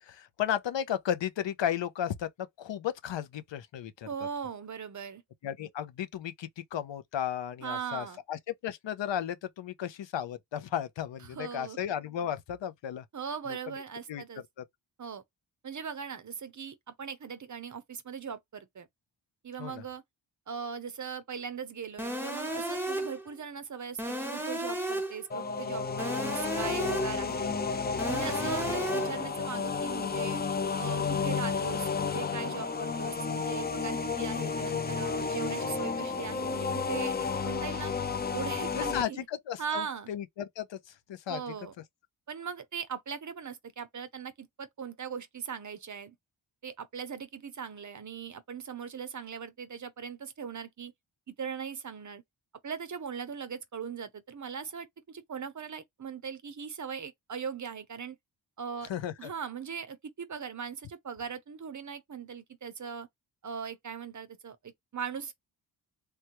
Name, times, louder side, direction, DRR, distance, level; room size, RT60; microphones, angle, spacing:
voice 1, 0.0-4.1 5.4-13.0 13.5-13.6 14.1-14.2 19.6-19.8 38.8-40.8 41.1-41.4 58.9-59.3, left 10 dB, 70° left, 0.6 m, -34 dB
voice 2, 4.0-5.2 7.6-8.2 11.2-11.8 13.1-14.4 15.0-15.2 15.6-18.9 19.4-20.0 20.5-27.6 28.0-30.4 30.8-37.9 38.3-39.3 39.6-40.1 41.3-41.7 42.3-46.2 46.6-50.9 51.3-52.2 52.6-58.2 58.6-58.9 59.2-63.1 63.4-65.3, right 7 dB, 40° right, 0.6 m, -39 dB
sound 1, 22.0-23.3 24.0-25.3 26.0-27.3 28.0-29.3, right 1 dB, 5° right, 0.8 m, -34 dB
sound 2, 25.3-39.0, left 5 dB, 20° left, 0.4 m, -32 dB
3.3 x 2.2 x 2.9 m
cardioid pair, 70°, 47 cm